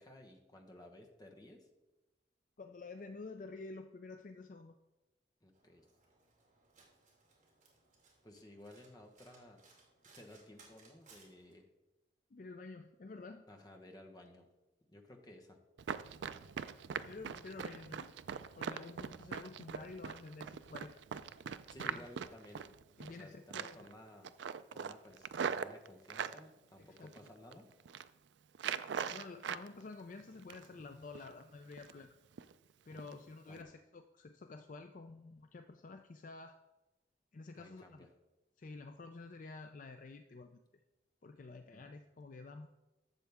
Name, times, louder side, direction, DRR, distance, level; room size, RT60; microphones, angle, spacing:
voice 1, 0.0-1.7 5.4-5.9 8.2-9.7 10.1-11.7 13.5-14.5 14.9-15.6 21.7-22.7 23.1-24.3 24.7-27.7 32.9-33.7 37.6-38.1 41.7-41.9, left 1 dB, 20° left, 3 dB, 1.1 m, -56 dB
voice 2, 2.6-4.8 12.3-13.4 16.5-16.6 17.0-18.1 18.6-21.0 21.3-21.4 21.8-22.1 23.0-23.9 26.8-27.3 29.1-32.1 32.9-36.6 37.3-38.1 38.6-40.6 41.2-42.7, left 3 dB, 45° left, 7 dB, 0.4 m, -50 dB
Domestic sounds home sounds, 5.5-11.5, right 4 dB, 45° right, 2.6 m, -65 dB
Run, 15.8-23.2 23.5-23.9 24.2-26.4 27.0-27.5 27.8-28.1 28.5-29.7 30.0-30.8 31.1-31.3 31.7-32.1 32.4-32.5 33.0-33.1 33.5-33.6, right 7 dB, 75° right, 0.4 m, -41 dB
12.0 x 7.4 x 3.5 m, 1.0 s
head